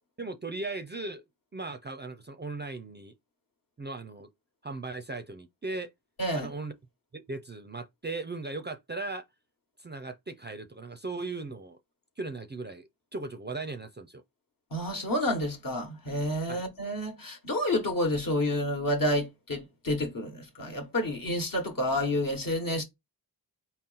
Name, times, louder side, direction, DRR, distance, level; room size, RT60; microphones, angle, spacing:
voice 1, 0.2-1.2 1.5-3.1 3.8-4.3 4.6-5.9 6.3-6.7 7.1-9.2 9.8-11.8 12.2-14.2 16.5-16.6, right 3 dB, 25° right, 0.4 m, -38 dB
voice 2, 6.2-6.5 14.7-22.8, left 1 dB, 55° left, 1.2 m, -29 dB
3.9 x 2.0 x 3.9 m
cardioid pair, 40°, 41 cm